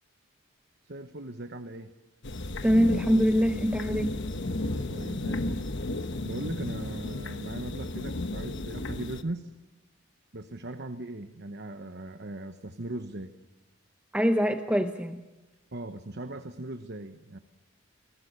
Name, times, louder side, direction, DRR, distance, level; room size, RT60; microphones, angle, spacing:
voice 1, 0.8-1.9 4.6-5.7 6.2-9.5 10.3-13.3 15.7-17.4, right 2 dB, 50° right, 8 dB, 1.1 m, -39 dB
sound 1, 2.2-9.2, left 2 dB, 55° left, 1.2 m, -34 dB
voice 2, 2.6-4.2 14.1-15.2, equal, 5° right, 6 dB, 0.8 m, -24 dB
28.5 x 20.0 x 6.8 m, 1.1 s
head